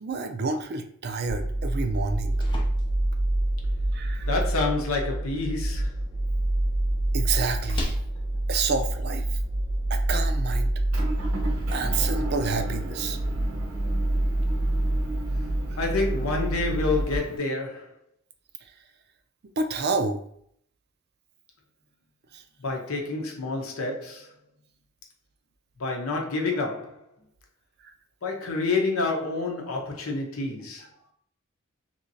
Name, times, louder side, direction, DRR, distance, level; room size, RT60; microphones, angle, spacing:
voice 1, 0.0-2.4 3.9-4.3 7.1-8.0 8.5-9.2 9.9-10.7 11.7-13.2 15.7-15.8 19.6-20.2 22.3-22.4 27.8-27.9, right 4 dB, 50° right, 0.4 m, -29 dB
sound 1, 1.3-17.2, right 1 dB, 50° left, 0.8 m, -27 dB
sound 2, 2.0-9.9, left 1 dB, 20° left, 0.5 m, -41 dB
voice 2, 4.3-5.9 15.8-17.9 22.6-24.3 25.8-27.0 28.2-30.9, left 3 dB, 90° left, 0.8 m, -28 dB
Motor vehicle (road) / Engine, 10.9-17.4, right 2 dB, 85° right, 0.7 m, -37 dB
3.1 x 2.9 x 2.7 m
head